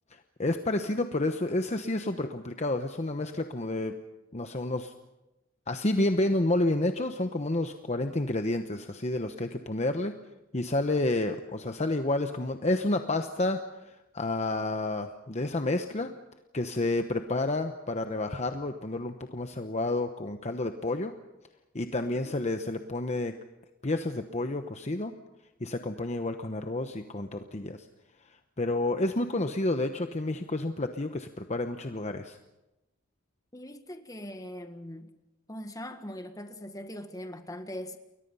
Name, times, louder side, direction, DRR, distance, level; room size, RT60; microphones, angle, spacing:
voice 1, 0.4-3.9 4.3-4.9 5.7-10.1 10.5-16.1 16.5-21.1 21.7-23.3 23.8-25.1 25.6-27.8 28.6-32.4, left 2 dB, 35° left, 1.0 m, -30 dB
voice 2, 22.0-22.3 33.5-35.1 35.5-38.0, left 1 dB, 15° left, 1.6 m, -41 dB
29.5 x 22.0 x 5.6 m
head